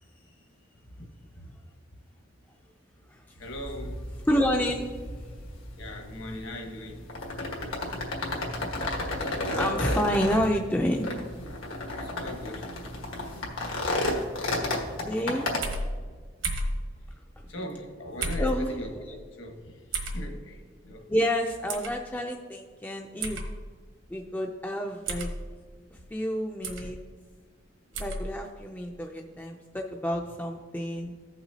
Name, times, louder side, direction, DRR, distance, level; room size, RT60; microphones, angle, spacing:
voice 1, 0.9-1.5 3.3-4.1 5.5-7.1 12.0-12.8 14.1-14.4 17.5-21.1, left 1 dB, 70° left, 2 dB, 1.3 m, -40 dB
sound 1, 3.4-15.6, left 1 dB, 90° left, 1.5 m, -33 dB
voice 2, 4.3-4.9 7.8-8.0 9.4-11.1 14.6-14.7 15.0-15.5 18.4-19.0 21.1-23.4 24.1-25.3 26.1-27.0 28.0-31.1, equal, 10° left, 2 dB, 0.4 m, -29 dB
sound 2, 15.6-15.9 16.4-16.7 18.2-18.5 19.9-20.2 21.7-21.9 23.2-23.5 25.1-25.3 26.6-26.9 27.9-28.2, right 2 dB, 75° right, 1.3 m, -31 dB
15.0 x 5.8 x 2.8 m, 1.5 s
head